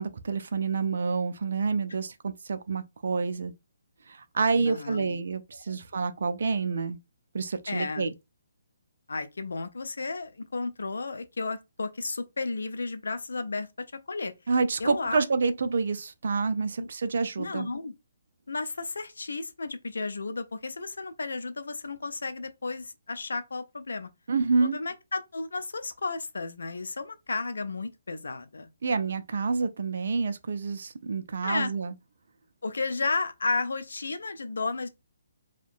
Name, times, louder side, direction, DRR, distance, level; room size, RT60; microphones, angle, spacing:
voice 1, 0.0-3.5 4.1-7.0 7.3-8.1 14.5-17.7 24.3-24.8 28.8-31.9, right 4 dB, 60° right, 0.4 m, -28 dB
voice 2, 4.5-5.2 5.7-5.8 7.7-8.1 9.1-13.7 14.1-14.3 14.8-15.3 16.8-16.9 17.4-17.9 18.5-24.1 24.6-28.7 31.4-31.7 32.6-34.9, left 3 dB, 75° left, 0.4 m, -33 dB
2.5 x 2.1 x 2.4 m
figure-of-eight pair, 140°, 0 cm